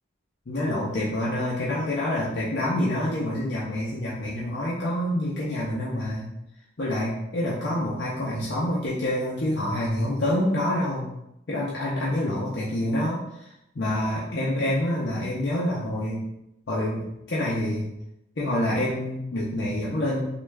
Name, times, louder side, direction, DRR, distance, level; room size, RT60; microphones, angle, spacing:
voice 1, 0.5-6.3 6.8-11.1 11.5-13.5 13.8-16.2 16.7-17.9 18.4-20.2, left 1 dB, 65° left, -7 dB, 0.6 m, -27 dB
3.1 x 2.3 x 3.3 m, 0.86 s
head